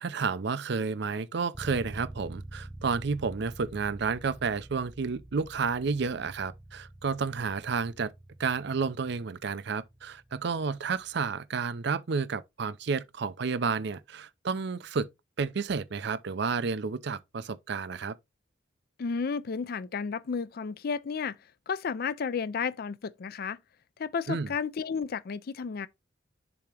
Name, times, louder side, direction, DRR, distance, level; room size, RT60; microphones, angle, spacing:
voice 1, 0.0-8.1 8.4-15.1 15.4-18.1 24.3-24.5, right 5 dB, 65° right, 0.5 m, -31 dB
sound 1, 1.5-11.3, right 1 dB, 15° right, 0.4 m, -47 dB
voice 2, 19.0-21.4 21.7-23.6 24.0-25.9, left 5 dB, 50° left, 0.4 m, -32 dB
7.0 x 2.9 x 4.8 m
head